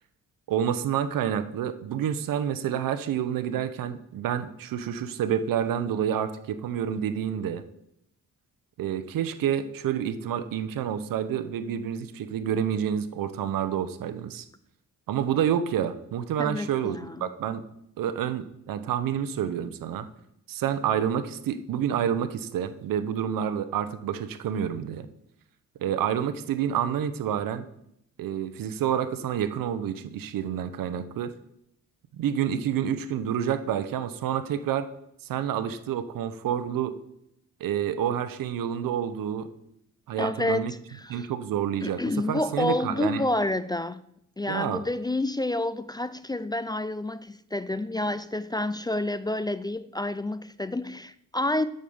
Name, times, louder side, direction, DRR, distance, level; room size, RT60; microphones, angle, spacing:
voice 1, 0.5-7.6 8.8-14.4 15.1-17.6 18.0-20.1 20.5-25.1 25.8-27.7 28.2-31.3 32.2-34.9 35.2-37.0 37.6-39.5 40.1-40.7 41.1-42.0 42.3-43.2 44.5-44.8, right 9 dB, 90° right, 0.9 m, -28 dB
voice 2, 16.4-17.3 40.2-40.7 40.9-41.3 41.8-44.0 44.4-51.6, left 2 dB, 15° left, 0.3 m, -29 dB
9.0 x 6.6 x 7.1 m
cardioid pair, 105°, 33 cm